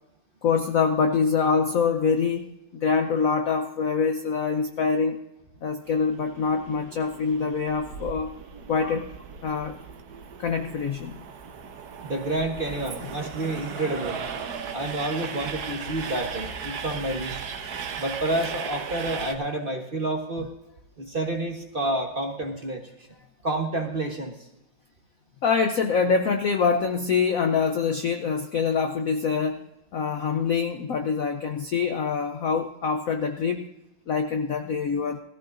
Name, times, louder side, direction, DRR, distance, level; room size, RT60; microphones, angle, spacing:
voice 1, 0.4-5.2 5.6-8.3 8.7-9.1 9.4-9.8 10.4-11.2 25.4-29.7 29.9-33.7 34.1-35.2, left 5 dB, 65° left, 6 dB, 0.8 m, -25 dB
Train, 5.9-19.3, right 6 dB, 60° right, 1.3 m, -37 dB
voice 2, 12.0-14.2 14.7-17.4 18.0-20.5 21.0-23.1 23.4-24.5, right 2 dB, 35° right, 2 dB, 1.1 m, -29 dB
18.5 x 14.0 x 2.5 m, 0.86 s
omnidirectional pair, 2.2 m